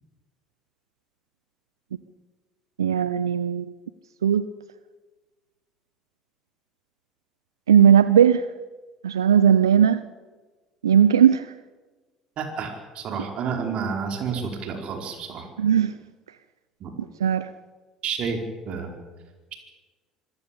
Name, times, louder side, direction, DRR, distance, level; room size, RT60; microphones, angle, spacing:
voice 1, 2.8-3.7 4.2-4.5 7.7-8.4 9.0-10.0 10.8-11.5 15.6-15.9 17.2-17.5, right 8 dB, 85° right, 15 dB, 0.6 m, -17 dB
voice 2, 12.4-15.5 16.8-16.9 18.0-18.4 18.7-18.9, right 6 dB, 55° right, 4 dB, 4.7 m, -30 dB
25.5 x 15.5 x 8.5 m, 1.3 s
hypercardioid pair, 60°, 2 cm